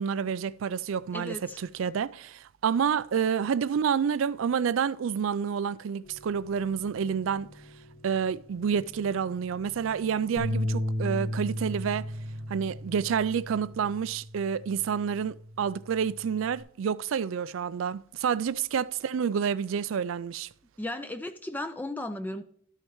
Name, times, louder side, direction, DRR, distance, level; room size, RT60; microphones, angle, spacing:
voice 1, 0.0-7.5 8.0-12.1 12.5-20.5, right 7 dB, 75° right, 0.4 m, -29 dB
voice 2, 1.1-1.6 20.8-22.4, left 1 dB, 10° left, 0.4 m, -35 dB
sound 1, 6.0-14.0, equal, 40° left, 1.4 m, -52 dB
sound 2, 10.4-16.6, equal, 80° left, 1.7 m, -35 dB
13.0 x 6.4 x 3.1 m
head